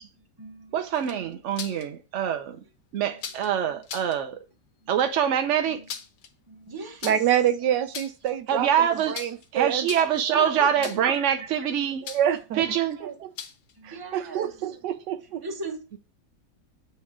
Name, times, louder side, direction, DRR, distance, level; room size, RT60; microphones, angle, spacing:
voice 1, 0.1-0.9 3.0-3.3 4.8-4.9 5.7-5.9 6.5-7.3 8.5-8.9 10.0-11.0 12.5-13.2 13.7-14.7 15.4-15.9, right 3 dB, 15° right, 1.0 m, -40 dB
voice 2, 0.7-2.6 2.9-4.4 4.9-5.8 8.5-9.1 9.5-12.0 12.6-13.0, right 9 dB, 65° right, 0.8 m, -25 dB
sound 1, 0.9-1.9 3.2-3.5 3.8-4.2 5.6-6.3 7.0-7.4 7.8-8.3 9.1-9.5 9.8-10.3 10.8-11.2 12.1-12.4 13.4-13.7, left 7 dB, 85° left, 1.5 m, -38 dB
voice 3, 7.0-8.7 9.1-9.9 10.6-10.7 12.0-12.6 13.2-13.3 13.8-15.4, right 10 dB, 85° right, 1.4 m, -26 dB
8.3 x 3.3 x 6.0 m
omnidirectional pair, 1.8 m